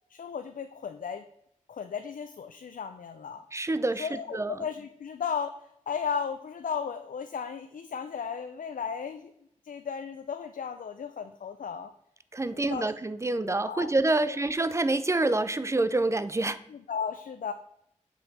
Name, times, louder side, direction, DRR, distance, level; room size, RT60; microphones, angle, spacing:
voice 1, 0.1-1.2 1.7-3.4 4.0-5.5 5.9-9.3 9.7-11.9 12.5-12.8 13.7-13.9 14.2-14.4 16.7-17.5, left 6 dB, 85° left, 8 dB, 0.4 m, -35 dB
voice 2, 3.5-4.7 12.3-16.6, right 2 dB, 20° right, 13 dB, 0.4 m, -27 dB
7.5 x 4.5 x 4.1 m, 0.74 s
wide cardioid pair, 85°, 14 cm